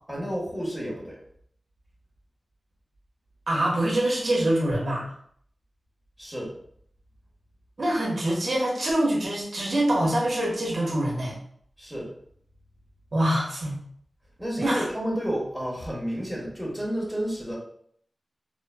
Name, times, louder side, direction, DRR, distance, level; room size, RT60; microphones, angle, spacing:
voice 1, 0.1-1.2 6.2-6.5 11.8-12.1 14.4-17.6, equal, 5° right, -4 dB, 1.2 m, -31 dB
voice 2, 3.5-5.1 7.8-11.3 13.1-13.8 14.6-14.8, right 1 dB, 70° right, -3 dB, 1.0 m, -25 dB
3.7 x 2.1 x 2.2 m, 0.63 s
cardioid pair, 55°, 0 cm